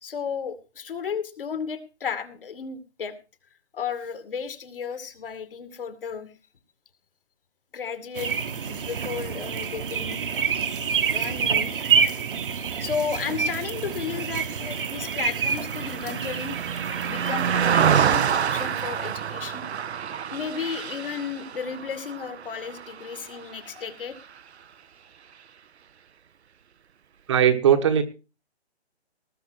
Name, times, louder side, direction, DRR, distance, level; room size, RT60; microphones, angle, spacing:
voice 1, 0.0-3.1 3.7-6.3 7.7-8.3 8.7-10.2 11.1-11.7 12.8-16.6 17.1-19.6 20.3-24.2, left 6 dB, 55° left, 10 dB, 2.5 m, -33 dB
sound 1, 8.1-18.1, right 6 dB, 50° right, 1.3 m, -28 dB
Car passing by, 14.2-23.8 24.2-24.4, right 8 dB, 75° right, 0.8 m, -27 dB
voice 2, 27.3-28.0, right 9 dB, 25° right, 8 dB, 1.2 m, -18 dB
19.5 x 6.9 x 6.3 m, 0.32 s
hypercardioid pair, 165°, 33 cm